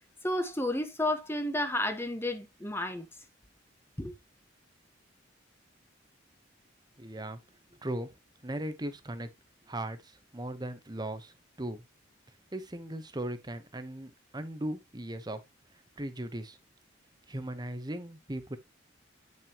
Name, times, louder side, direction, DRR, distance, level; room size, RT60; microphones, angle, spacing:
voice 1, 0.2-3.1 4.0-4.1, left 1 dB, 10° left, 1.1 m, -31 dB
voice 2, 7.0-7.4 7.8-8.1 8.4-9.3 9.7-11.8 12.5-15.4 16.0-16.6 17.3-18.6, right 1 dB, 20° right, 1.0 m, -38 dB
9.0 x 6.0 x 3.0 m
head